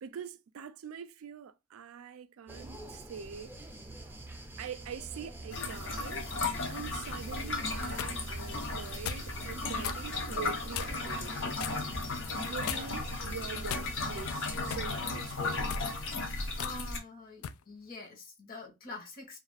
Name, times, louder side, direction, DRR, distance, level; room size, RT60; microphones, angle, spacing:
voice 1, 0.0-3.5 4.6-6.3 6.7-11.6 12.3-15.6, right 7 dB, 75° right, 0.4 m, -44 dB
sound 1, 2.5-14.8, right 2 dB, 10° right, 0.5 m, -46 dB
sound 2, 5.5-17.0, left 3 dB, 65° left, 0.7 m, -35 dB
sound 3, 7.6-8.2 9.0-9.3 9.8-10.0 10.7-11.1 11.6-11.8 12.7-13.1 13.7-14.2 14.7-14.9 15.6-15.9 16.6-16.8 17.4-17.6, left 9 dB, 80° left, 0.3 m, -38 dB
voice 2, 16.6-19.4, left 3 dB, 45° left, 1.1 m, -46 dB
2.5 x 2.3 x 3.2 m
head